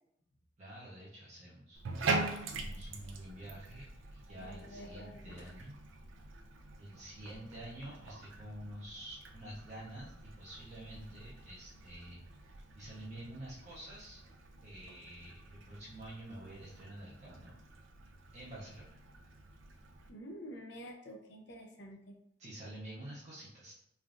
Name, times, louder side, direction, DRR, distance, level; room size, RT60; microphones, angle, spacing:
voice 1, 0.6-1.8 2.6-5.8 6.8-12.2 12.8-14.2 14.6-17.5 18.3-18.9 22.4-23.7, right 1 dB, 35° right, -6 dB, 0.5 m, -48 dB
Bathtub (filling or washing), 1.7-20.1, right 3 dB, 90° right, 0.4 m, -44 dB
voice 2, 4.4-5.5 20.1-22.1, equal, 65° left, 2 dB, 0.5 m, -49 dB
3.3 x 2.4 x 2.4 m, 0.73 s
head